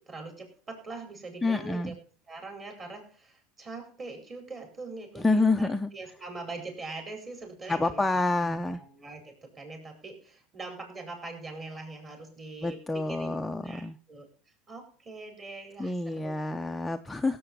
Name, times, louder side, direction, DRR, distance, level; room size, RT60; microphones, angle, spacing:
voice 1, 0.0-1.9 2.3-13.3 13.6-14.3 14.7-16.3, right 3 dB, 30° right, 4 dB, 4.9 m, -42 dB
voice 2, 1.4-1.9 5.2-5.9 7.7-8.8 12.6-14.0 15.8-17.4, left 3 dB, 10° left, 5 dB, 0.6 m, -28 dB
16.5 x 7.7 x 5.5 m, 0.41 s
supercardioid pair, 130°, 0 cm